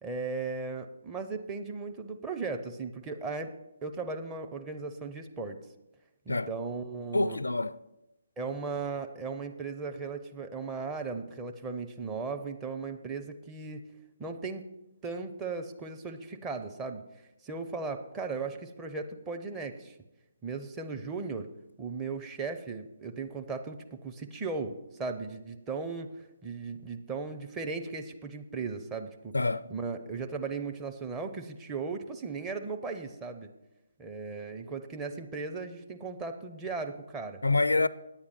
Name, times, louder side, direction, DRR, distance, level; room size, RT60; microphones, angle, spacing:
voice 1, 0.0-3.5 3.8-5.6 6.3-7.4 8.4-13.8 14.2-14.7 15.0-17.0 17.4-19.9 20.4-21.5 21.8-29.4 29.7-33.5 34.0-37.4, right 4 dB, 15° right, 0.6 m, -37 dB
voice 2, 7.1-7.8 29.3-29.7 37.4-37.9, left 3 dB, 75° left, 0.4 m, -26 dB
9.7 x 8.7 x 5.9 m
figure-of-eight pair, 140°, 0 cm